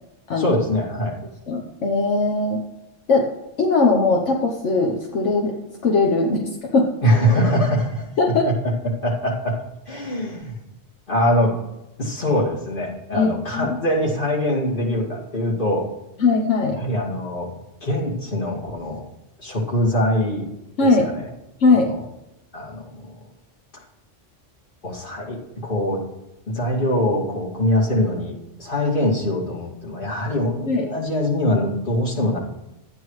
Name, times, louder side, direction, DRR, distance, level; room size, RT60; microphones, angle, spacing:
voice 1, 0.4-1.1 7.0-8.1 8.5-8.6 9.0-10.6 11.1-11.6 12.0-15.9 16.7-17.5 17.8-19.0 19.4-20.5 20.8-21.3 21.7-22.0 22.5-23.1 24.8-26.0 26.5-32.4, left 1 dB, 45° left, -3 dB, 2.4 m, -23 dB
voice 2, 1.5-2.6 3.1-3.3 3.6-5.5 5.8-6.9 8.2-8.5 13.1-13.7 16.2-16.8 20.8-21.1 21.6-21.9 30.6-30.8, left 3 dB, 80° left, 1 dB, 1.2 m, -19 dB
12.5 x 9.0 x 3.1 m, 0.93 s
omnidirectional pair, 1.2 m